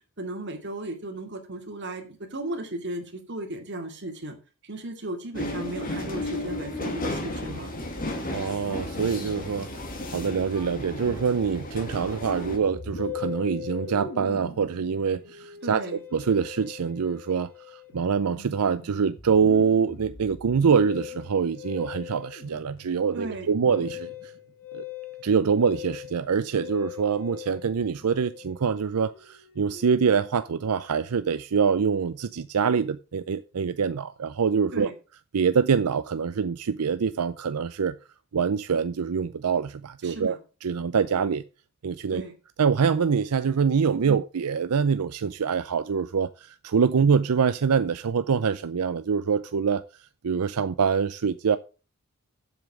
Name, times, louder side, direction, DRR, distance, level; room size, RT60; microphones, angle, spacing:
voice 1, 0.2-4.4 4.6-7.7 15.6-16.0 23.1-23.5 34.7-34.9 40.0-40.4 42.1-42.3, right 1 dB, 50° right, 2.5 m, -35 dB
sound 1, 5.3-12.6, left 1 dB, 40° left, 2.1 m, -33 dB
voice 2, 8.3-9.7 10.1-15.8 16.1-24.3 24.7-24.8 25.2-34.9 35.3-37.9 38.3-40.4 40.6-41.4 41.8-42.2 42.6-49.8 50.2-51.6, right 6 dB, 85° right, 0.5 m, -25 dB
Musical instrument, 12.6-30.2, left 7 dB, 65° left, 2.6 m, -41 dB
7.9 x 7.2 x 6.1 m
head